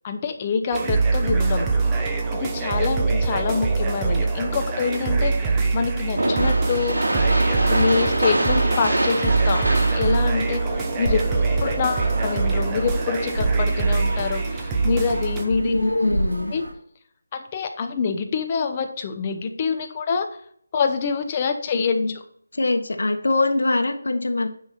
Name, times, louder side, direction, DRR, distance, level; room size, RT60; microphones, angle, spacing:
voice 1, 0.0-1.7 2.3-5.3 5.7-7.0 7.7-9.7 9.9-10.6 11.0-11.3 11.6-15.7 16.5-16.6 17.3-20.3 20.7-22.0, left 5 dB, 25° left, 6 dB, 0.9 m, -25 dB
sound 1, 0.7-15.4, right 4 dB, 10° right, 0.9 m, -23 dB
sound 2, 6.1-16.7, right 1 dB, 90° right, 3.6 m, -27 dB
voice 2, 15.6-16.5 21.7-22.1 22.5-24.5, left 2 dB, 70° left, 5 dB, 1.4 m, -23 dB
9.5 x 5.6 x 4.4 m, 0.65 s
figure-of-eight pair, 170°, 0 cm